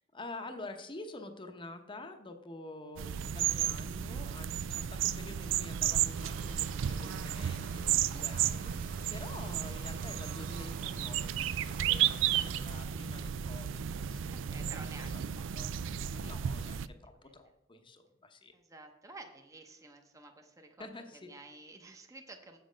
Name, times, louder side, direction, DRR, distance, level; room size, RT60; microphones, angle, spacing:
voice 1, 0.1-14.9 15.5-15.7 16.2-18.5 20.8-21.3, left 2 dB, 25° left, 6 dB, 0.8 m, -48 dB
sound 1, 3.0-16.9, right 10 dB, 65° right, 0.3 m, -33 dB
sound 2, 6.1-12.9, right 5 dB, 45° right, 1.2 m, -51 dB
voice 2, 14.3-15.7 16.1-16.2 17.2-17.3 18.5-22.6, right 2 dB, 15° right, 3 dB, 0.8 m, -52 dB
7.5 x 7.5 x 5.1 m, 0.91 s
head